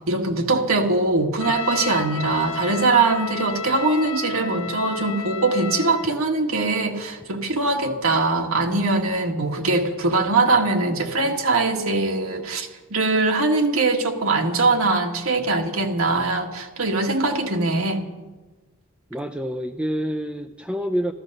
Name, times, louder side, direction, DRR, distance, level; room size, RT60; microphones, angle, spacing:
voice 1, 0.1-18.0, right 3 dB, 80° right, 3 dB, 1.8 m, -22 dB
Trumpet, 1.4-6.1, left 6 dB, 65° left, 0.9 m, -32 dB
voice 2, 19.1-21.1, equal, 5° right, 7 dB, 0.4 m, -27 dB
14.5 x 13.5 x 6.7 m, 1.2 s
head